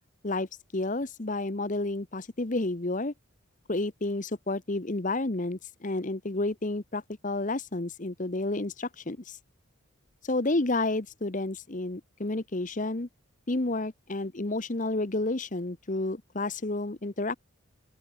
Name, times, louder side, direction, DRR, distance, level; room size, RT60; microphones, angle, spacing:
voice 1, 0.7-3.1 3.7-9.4 10.2-13.1 13.5-17.4, left 2 dB, 35° left, 1.0 m, -30 dB
open air
head